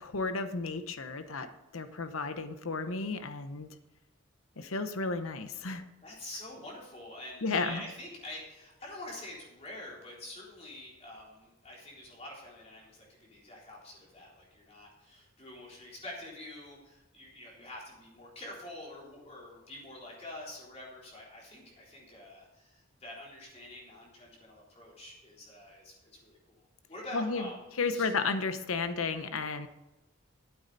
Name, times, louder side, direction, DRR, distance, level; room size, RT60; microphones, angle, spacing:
voice 1, 0.0-3.7 4.6-5.8 7.4-7.8 27.1-27.4 27.8-29.7, left 4 dB, 80° left, 10 dB, 0.9 m, -33 dB
voice 2, 6.0-28.1, left 1 dB, 30° left, -3 dB, 3.7 m, -46 dB
13.0 x 8.7 x 4.0 m, 1.0 s
head